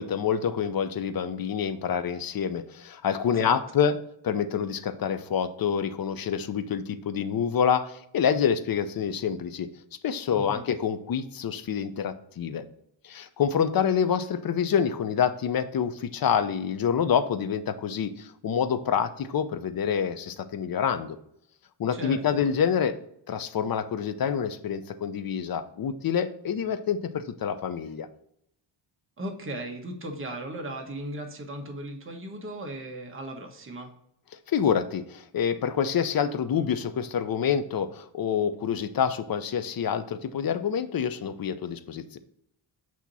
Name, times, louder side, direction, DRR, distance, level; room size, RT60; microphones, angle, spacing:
voice 1, 0.0-4.0 4.2-9.7 10.0-12.6 13.0-21.2 21.8-23.0 23.3-28.1 34.5-42.2, left 7 dB, 45° left, 12 dB, 0.6 m, -27 dB
voice 2, 10.3-10.6 21.9-22.4 29.2-33.9, right 1 dB, 25° right, 2 dB, 1.2 m, -37 dB
8.3 x 2.9 x 4.1 m, 0.73 s
cardioid pair, 115°, 49 cm